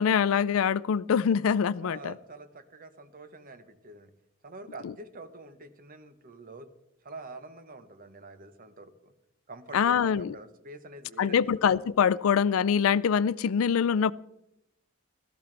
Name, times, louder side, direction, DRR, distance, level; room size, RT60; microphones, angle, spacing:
voice 1, 0.0-2.1 9.7-10.3 11.2-14.1, left 7 dB, 75° left, 20 dB, 0.4 m, -24 dB
voice 2, 1.8-4.1 4.4-6.7 7.0-9.1 9.5-11.5, right 2 dB, 45° right, 10 dB, 1.0 m, -46 dB
16.0 x 14.0 x 3.4 m, 0.84 s
head